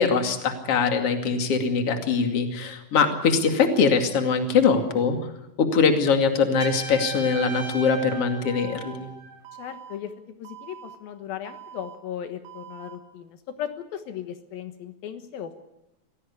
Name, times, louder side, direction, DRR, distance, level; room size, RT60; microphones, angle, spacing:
voice 1, 0.0-5.2 5.6-9.1, left 5 dB, 45° left, 5 dB, 3.1 m, -22 dB
Trumpet, 6.6-9.4, right 3 dB, 35° right, 5.7 m, -37 dB
Alarm, 8.5-9.0 9.5-10.0 10.5-11.0 11.5-12.0 12.5-13.0, right 10 dB, 75° right, 4.4 m, -44 dB
voice 2, 9.6-10.1 10.4-15.6, left 9 dB, 80° left, 8 dB, 3.1 m, -36 dB
25.0 x 17.0 x 8.3 m, 0.94 s
omnidirectional pair, 4.2 m